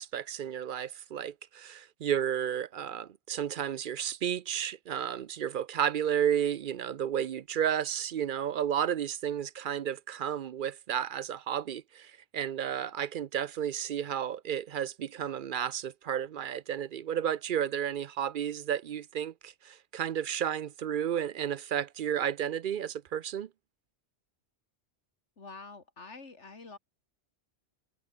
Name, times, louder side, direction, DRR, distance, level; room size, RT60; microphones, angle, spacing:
voice 1, 0.0-23.5, right 9 dB, 55° right, 0.6 m, -32 dB
voice 2, 25.4-26.8, left 4 dB, 85° left, 3.0 m, -47 dB
omnidirectional pair, 1.2 m